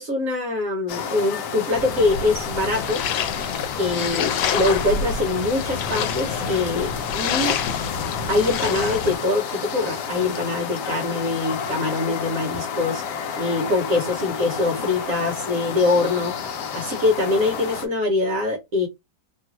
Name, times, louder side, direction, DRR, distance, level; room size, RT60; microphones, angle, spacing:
voice 1, 0.0-3.0 3.8-7.6 8.3-16.4 16.7-18.9, left 2 dB, 60° right, 0.9 m, -23 dB
sound 1, 0.9-17.9, left 7 dB, 70° left, 1.1 m, -31 dB
sound 2, 1.8-9.2, left 7 dB, 85° left, 1.4 m, -27 dB
3.1 x 2.3 x 2.9 m
omnidirectional pair, 2.1 m